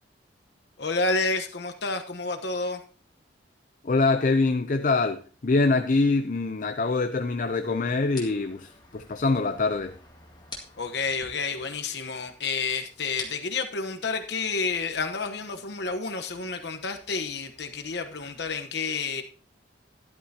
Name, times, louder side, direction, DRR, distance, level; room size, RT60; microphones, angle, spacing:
voice 1, 0.8-2.8 10.8-19.2, left 4 dB, 60° left, 1.1 m, -30 dB
voice 2, 3.8-10.0, left 3 dB, 45° left, 0.5 m, -24 dB
sound 1, 7.2-18.6, left 4 dB, 25° left, 2.1 m, -49 dB
13.0 x 11.0 x 2.8 m
head